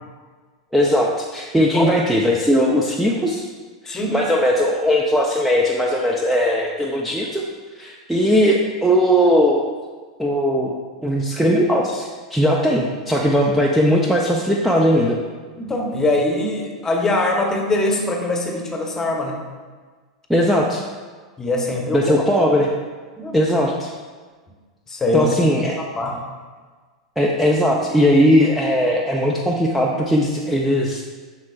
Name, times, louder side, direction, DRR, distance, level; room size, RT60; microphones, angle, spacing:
voice 1, 0.7-3.5 3.8-7.5 7.7-9.6 10.2-10.8 11.0-15.2 20.3-20.8 21.9-22.7 23.3-23.9 25.1-25.8 27.2-31.0, equal, 5° right, -2 dB, 0.5 m, -18 dB
voice 2, 3.9-4.2 15.6-19.4 21.4-22.3 23.2-23.4 24.9-25.3 25.8-26.2, left 2 dB, 15° left, 2 dB, 1.0 m, -22 dB
7.3 x 6.1 x 2.4 m, 1.4 s
figure-of-eight pair, 90°, 3 cm